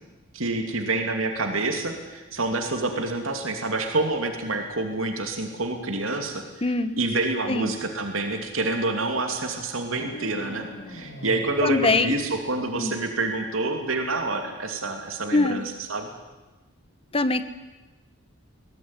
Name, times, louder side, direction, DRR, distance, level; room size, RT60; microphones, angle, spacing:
voice 1, 0.3-16.1, right 2 dB, 80° right, 4 dB, 2.8 m, -27 dB
voice 2, 6.6-6.9 7.5-7.7 11.6-12.2 12.8-13.0 15.3-15.6 17.1-17.4, left 3 dB, 30° left, 12 dB, 1.2 m, -23 dB
sound 1, 9.8-13.0, left 1 dB, 65° left, 3.1 m, -41 dB
22.0 x 18.0 x 9.7 m, 1.2 s
head